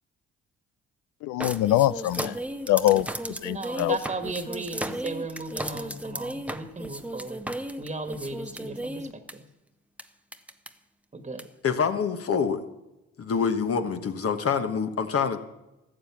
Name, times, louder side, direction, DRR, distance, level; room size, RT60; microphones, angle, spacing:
voice 1, 1.2-2.4 2.7-3.1 3.4-4.0, left 14 dB, 75° left, 18 dB, 0.5 m, -23 dB
sound 1, 1.4-9.3 10.0-10.1 10.3-10.7 11.4-11.5, right 1 dB, 5° right, 0.8 m, -35 dB
voice 2, 3.5-7.4 7.8-9.4 11.1-11.5, right 3 dB, 20° right, 8 dB, 1.6 m, -36 dB
voice 3, 11.6-12.6 13.2-15.4, left 6 dB, 50° left, 7 dB, 1.3 m, -26 dB
14.0 x 7.4 x 7.1 m, 0.98 s
supercardioid pair, 55°, 30 cm